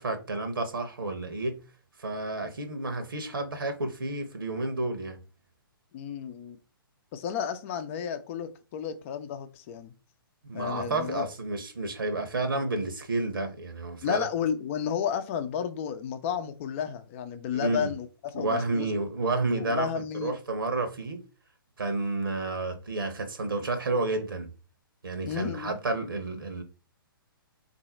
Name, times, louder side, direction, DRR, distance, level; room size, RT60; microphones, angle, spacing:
voice 1, 0.0-1.6 2.0-5.2 10.4-14.2 17.5-17.9 18.3-21.2 21.8-24.5 25.0-26.6, right 2 dB, 65° right, 1.0 m, -30 dB
voice 2, 5.9-6.6 7.1-9.9 10.5-11.3 14.0-18.1 18.3-18.9 19.5-20.3 25.2-25.8, left 8 dB, 35° left, 0.6 m, -32 dB
3.9 x 2.7 x 4.2 m
figure-of-eight pair, 125°, 12 cm